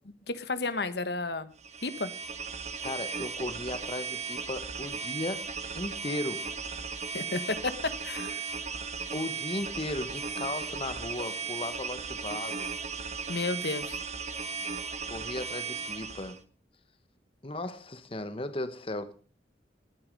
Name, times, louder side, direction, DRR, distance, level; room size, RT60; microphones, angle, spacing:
voice 1, 0.3-1.5 1.8-2.1 7.1-7.7 8.0-8.4 13.3-14.0, left 3 dB, 70° left, 1.3 m, -32 dB
sound 1, 1.6-16.4, right 5 dB, 40° right, 1.5 m, -36 dB
voice 2, 2.8-5.4 5.7-6.5 9.1-12.7 15.1-16.4 17.4-19.1, left 2 dB, 30° left, 1.2 m, -36 dB
19.0 x 9.7 x 5.3 m
head